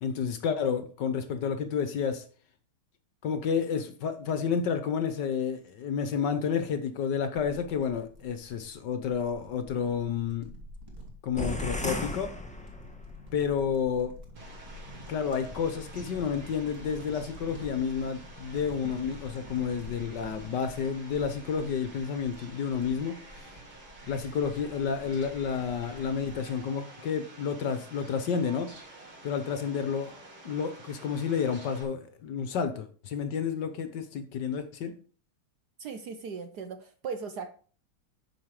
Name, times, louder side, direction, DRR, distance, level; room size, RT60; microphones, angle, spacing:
voice 1, 0.0-2.2 3.2-10.5 11.2-12.3 13.3-14.1 15.1-23.2 24.1-28.7 29.2-30.1 30.4-34.9, left 6 dB, 60° left, 9 dB, 1.4 m, -30 dB
sound 1, 7.4-26.7, left 1 dB, 10° right, 3.1 m, -48 dB
sound 2, 11.4-13.2, left 1 dB, 5° left, 0.8 m, -34 dB
Fowl, 14.4-31.8, right 2 dB, 90° right, 4.3 m, -50 dB
voice 2, 35.8-37.5, right 5 dB, 60° right, 9 dB, 1.2 m, -38 dB
9.3 x 6.5 x 4.8 m, 0.42 s
omnidirectional pair, 2.3 m